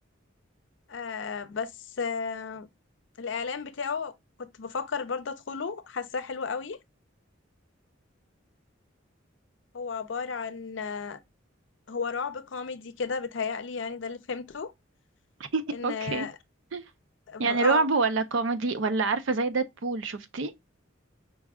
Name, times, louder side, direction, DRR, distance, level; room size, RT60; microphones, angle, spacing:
voice 1, 0.9-1.7 2.0-2.7 3.2-4.1 4.4-6.8 9.7-11.2 11.9-14.7 15.7-16.4 17.3-17.8, left 5 dB, 65° left, 0.5 m, -33 dB
voice 2, 15.5-16.3 16.7-16.8 17.4-20.5, right 4 dB, 70° right, 0.6 m, -26 dB
5.2 x 2.4 x 3.5 m
head